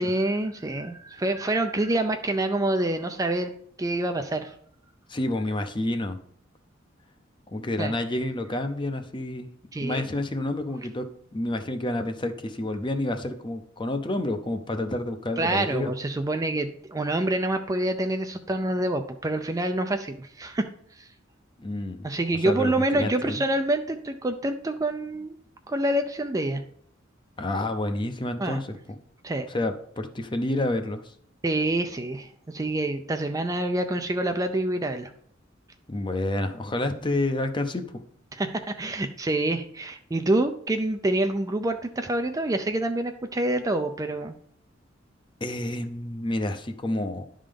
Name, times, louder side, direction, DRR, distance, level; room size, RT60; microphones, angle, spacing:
voice 1, 0.0-3.5 3.8-4.5 7.8-7.9 9.7-10.1 15.4-21.1 22.0-25.3 25.7-26.6 28.4-28.6 29.2-29.5 31.4-35.1 38.3-44.3, right 1 dB, 20° right, 7 dB, 0.4 m, -27 dB
voice 2, 5.1-6.2 7.5-9.5 9.8-15.9 21.6-22.1 22.4-23.4 27.4-28.8 29.5-31.1 35.9-38.0 45.4-47.3, left 1 dB, 25° left, 6 dB, 0.7 m, -29 dB
11.0 x 3.8 x 5.1 m, 0.63 s
head